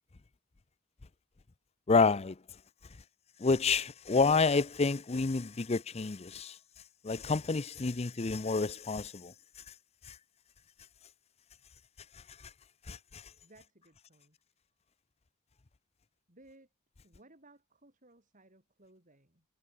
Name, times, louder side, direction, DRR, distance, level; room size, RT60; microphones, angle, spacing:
voice 1, 1.9-2.4 3.4-6.5 7.0-9.3 12.9-13.2, left 4 dB, 30° left, 0.5 m, -29 dB
voice 2, 13.4-14.4 16.3-16.7 17.0-19.5, right 2 dB, 35° right, 7.0 m, -60 dB
head